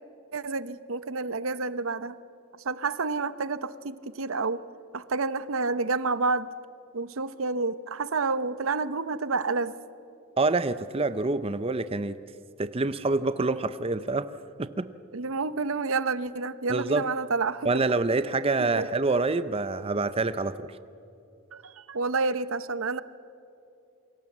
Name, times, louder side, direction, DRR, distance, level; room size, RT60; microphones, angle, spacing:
voice 1, 0.3-2.2 2.5-4.6 4.9-6.5 6.9-9.8 15.1-17.8 18.6-18.9 21.5-23.0, right 4 dB, 70° right, 15 dB, 0.8 m, -29 dB
voice 2, 10.4-12.2 12.6-14.3 14.6-14.9 16.7-17.0 17.7-20.8, right 3 dB, 25° right, 13 dB, 0.6 m, -26 dB
27.5 x 23.0 x 7.3 m, 2.7 s
head